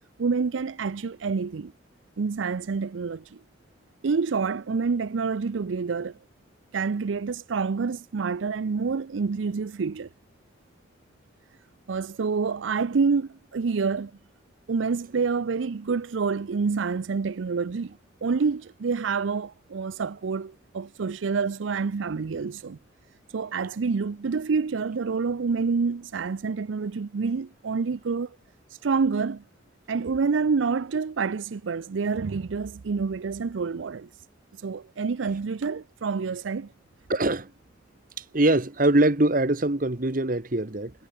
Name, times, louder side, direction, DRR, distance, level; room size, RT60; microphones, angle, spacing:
voice 1, 0.2-1.7 2.2-3.4 4.0-6.2 6.7-10.1 11.9-14.1 14.7-22.8 23.3-28.4 28.8-29.4 29.9-34.1 34.6-36.7, right 5 dB, 90° right, 0.5 m, -27 dB
voice 2, 37.1-37.5 38.2-40.9, right 2 dB, 45° right, 1.4 m, -23 dB
head